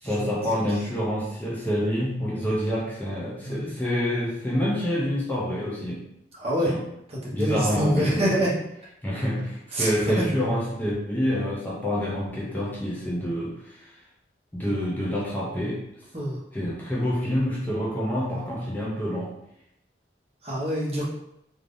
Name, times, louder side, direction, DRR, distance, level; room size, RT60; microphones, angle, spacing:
voice 1, 0.0-6.0 6.7-6.8 7.3-8.5 9.0-13.9 14.5-15.8 16.5-19.4, equal, 10° left, -6 dB, 0.4 m, -27 dB
voice 2, 6.4-6.7 7.1-8.5 9.7-9.9 10.1-10.2 16.1-16.4 20.4-21.0, equal, 35° right, -5 dB, 0.8 m, -25 dB
2.5 x 2.4 x 3.3 m, 0.79 s
head